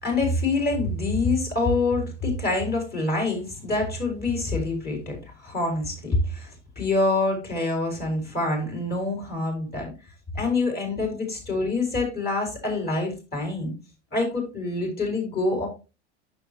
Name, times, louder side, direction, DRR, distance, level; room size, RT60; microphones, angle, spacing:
voice 1, 0.0-6.5 6.8-9.9 10.3-13.7 14.1-15.7, left 2 dB, 25° left, 1 dB, 4.7 m, -26 dB
9.0 x 6.9 x 3.0 m, 0.30 s
hypercardioid pair, 100°, 36 cm